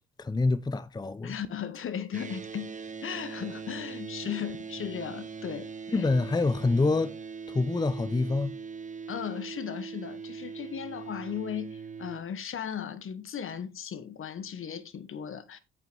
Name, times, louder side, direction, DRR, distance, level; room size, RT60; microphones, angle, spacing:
voice 1, 0.2-1.4 5.9-7.1 7.5-8.6, left 3 dB, 15° left, 0.7 m, -26 dB
voice 2, 1.2-2.7 3.0-6.1 9.1-15.6, left 8 dB, 45° left, 1.4 m, -36 dB
sound 1, 2.1-12.2, right 5 dB, 25° right, 1.3 m, -41 dB
8.9 x 6.3 x 4.6 m
hypercardioid pair, 60°, 29 cm